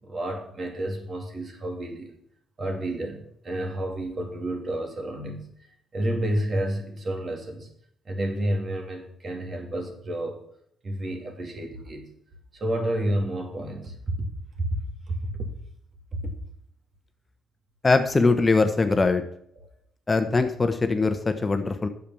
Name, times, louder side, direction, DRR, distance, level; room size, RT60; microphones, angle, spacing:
voice 1, 0.0-2.1 2.6-5.4 5.9-7.7 8.0-10.4 10.8-12.1 12.5-14.3 14.6-14.7 15.1-15.5 16.1-16.3 19.6-19.7, right 1 dB, 45° right, 3 dB, 2.6 m, -30 dB
voice 2, 17.8-19.2 20.1-21.9, left 3 dB, 25° left, 7 dB, 1.0 m, -22 dB
8.6 x 6.9 x 7.0 m, 0.68 s
cardioid pair, 90°, 0 cm